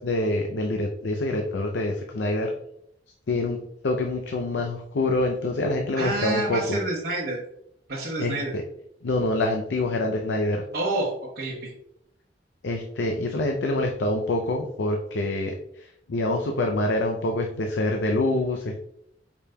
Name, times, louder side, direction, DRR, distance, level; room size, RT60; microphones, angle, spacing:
voice 1, 0.0-2.5 3.3-6.8 8.2-8.6 9.0-10.6 12.6-18.8, left 2 dB, 80° left, 2 dB, 0.5 m, -26 dB
voice 2, 5.9-7.4 7.9-8.5 10.7-11.6, right 2 dB, 60° right, -5 dB, 1.0 m, -28 dB
5.1 x 4.7 x 2.2 m, 0.75 s
head